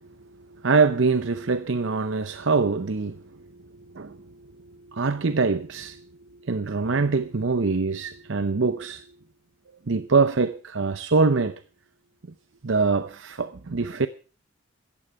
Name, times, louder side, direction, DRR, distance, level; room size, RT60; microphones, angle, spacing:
voice 1, 0.6-3.2 3.9-4.2 4.9-6.0 6.4-9.0 9.9-11.6 12.6-14.1, right 4 dB, 65° right, 0.7 m, -23 dB
16.0 x 14.5 x 4.7 m
head